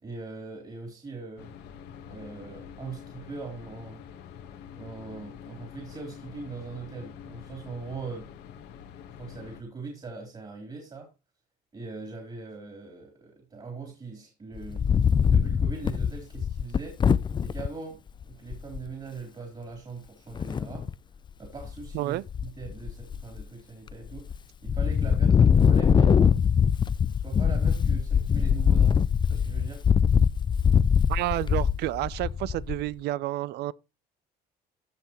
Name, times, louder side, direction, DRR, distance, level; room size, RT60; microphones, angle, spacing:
voice 1, 0.0-1.6 2.1-4.0 4.7-8.3 9.2-11.1 11.7-20.9 21.4-22.2 22.6-26.4 27.1-29.8, right 4 dB, 30° right, 3.9 m, -41 dB
sound 1, 1.4-9.6, left 8 dB, 85° left, 1.4 m, -46 dB
Wind, 14.6-17.7 18.2-18.3 18.5-18.9 20.3-20.9 21.5-22.0 22.3-23.4 23.9-24.4 24.7-32.9, left 7 dB, 25° left, 0.4 m, -23 dB
voice 2, 31.1-33.7, right 16 dB, 80° right, 0.5 m, -30 dB
16.0 x 5.7 x 3.0 m
cardioid pair, 110°, 17 cm